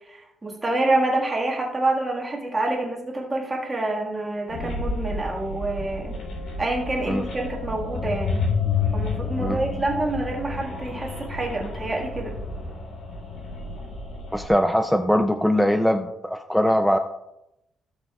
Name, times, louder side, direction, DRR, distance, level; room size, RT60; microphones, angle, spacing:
voice 1, 0.1-6.2 6.6-8.4 8.9-12.3, right 2 dB, 15° right, -1 dB, 1.6 m, -27 dB
sound 1, 4.5-14.5, left 4 dB, 80° left, 3.2 m, -30 dB
voice 2, 14.3-17.0, equal, ahead, 6 dB, 0.4 m, -21 dB
16.0 x 6.7 x 2.3 m, 0.87 s
cardioid pair, 165°, 0 cm